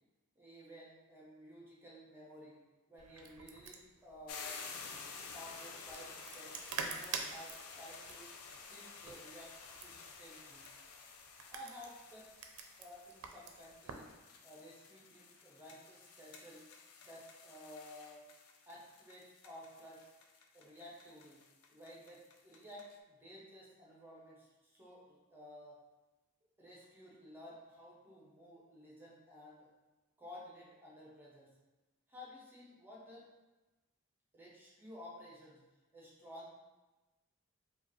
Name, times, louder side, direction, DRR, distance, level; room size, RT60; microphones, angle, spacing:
voice 1, 0.4-2.6 2.9-4.6 5.3-8.3 8.7-9.5 9.8-10.6 11.5-12.3 12.8-14.1 14.4-16.6 17.1-18.2 18.7-20.0 20.5-21.4 21.7-25.8 26.6-29.7 30.2-31.5 32.1-33.2 34.3-35.6 35.9-36.5, left 1 dB, 10° right, -5 dB, 0.7 m, -54 dB
sound 1, 3.0-14.1, right 5 dB, 80° right, 0.4 m, -47 dB
sound 2, 4.3-23.0, left 5 dB, 75° left, 0.4 m, -52 dB
4.8 x 2.3 x 3.0 m, 1.1 s
head